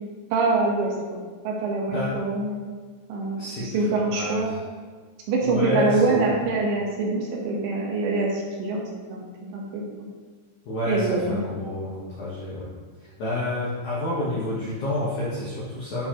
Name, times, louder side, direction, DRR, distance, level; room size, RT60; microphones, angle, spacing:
voice 1, 0.3-1.2 1.4-2.6 3.1-4.5 5.3-8.8 9.1-9.2 9.5-9.8 10.9-11.4, right 3 dB, 75° right, -2 dB, 3.2 m, -24 dB
voice 2, 3.4-4.6 5.4-6.4 10.6-12.7 13.0-16.1, left 1 dB, 75° left, -7 dB, 1.7 m, -29 dB
11.0 x 4.6 x 3.0 m, 1.5 s
omnidirectional pair, 5.3 m